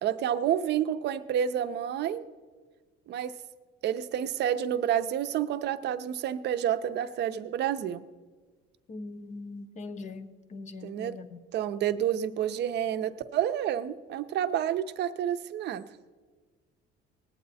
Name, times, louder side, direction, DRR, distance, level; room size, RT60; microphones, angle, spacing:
voice 1, 0.0-2.2 3.1-3.3 3.8-8.0 10.8-11.1 11.5-15.8, right 10 dB, 55° right, 11 dB, 0.6 m, -29 dB
voice 2, 8.9-11.4, left 3 dB, 35° left, 12 dB, 0.7 m, -41 dB
19.0 x 8.6 x 4.1 m, 1.4 s
cardioid pair, 150°, 21 cm